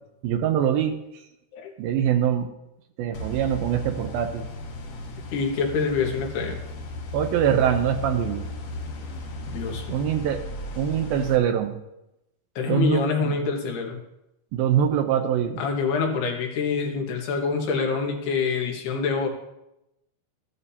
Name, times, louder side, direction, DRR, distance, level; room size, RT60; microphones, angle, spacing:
voice 1, 0.2-1.0 1.8-2.5 3.0-4.5 7.1-8.5 9.9-10.4 10.8-11.8 12.7-13.4 14.5-15.6, right 9 dB, 80° right, 6 dB, 2.3 m, -23 dB
sound 1, 3.1-11.4, left 1 dB, 60° left, 2.1 m, -35 dB
voice 2, 5.3-6.6 9.5-10.1 12.6-14.0 15.6-19.3, left 5 dB, 85° left, 1 dB, 3.6 m, -26 dB
14.0 x 12.0 x 2.8 m, 0.89 s
omnidirectional pair, 4.6 m